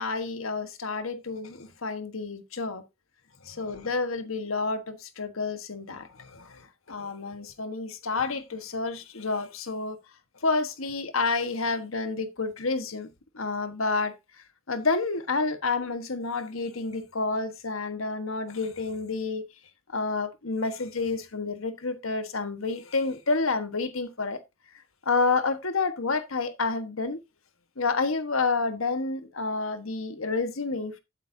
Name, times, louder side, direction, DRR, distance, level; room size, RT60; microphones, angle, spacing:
voice 1, 0.0-2.8 3.4-10.0 10.4-13.1 13.3-14.1 14.7-19.4 19.9-24.4 25.0-27.2 27.8-31.0, left 3 dB, 85° left, 1.5 m, -29 dB
12.0 x 9.1 x 2.8 m
head